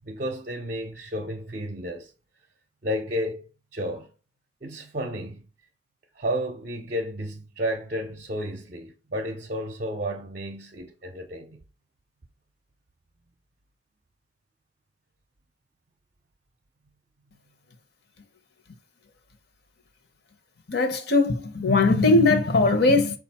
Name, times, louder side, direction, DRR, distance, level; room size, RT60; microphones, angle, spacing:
voice 1, 0.1-2.1 2.8-4.1 4.6-5.4 6.2-11.6, equal, 45° right, 0.6 m, -32 dB
voice 2, 20.7-23.2, left 3 dB, 55° left, 0.8 m, -20 dB
5.0 x 2.4 x 4.1 m
head